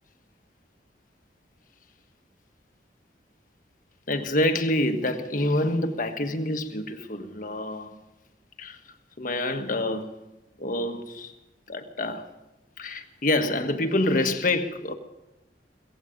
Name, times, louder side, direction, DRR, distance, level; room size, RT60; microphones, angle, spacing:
voice 1, 4.1-8.0 8.6-8.8 9.2-10.2 10.6-11.3 11.7-12.3 12.8-14.9, left 1 dB, 50° left, 1.4 m, -27 dB
17.0 x 16.0 x 5.2 m
head